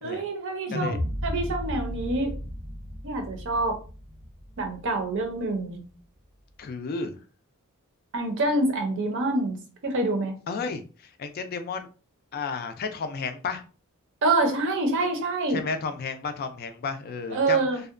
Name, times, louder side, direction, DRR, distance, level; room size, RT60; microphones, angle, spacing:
voice 1, 0.0-1.0 1.2-2.3 3.0-3.8 4.6-5.8 8.1-9.6 9.8-10.3 14.2-15.6 17.3-17.8, right 2 dB, 60° right, 0.6 m, -26 dB
sound 1, 0.7-5.0, left 1 dB, 10° right, 0.6 m, -34 dB
voice 2, 6.6-7.1 10.5-11.9 12.3-13.6 15.5-17.7, left 4 dB, 45° left, 0.3 m, -32 dB
2.7 x 2.1 x 2.4 m
head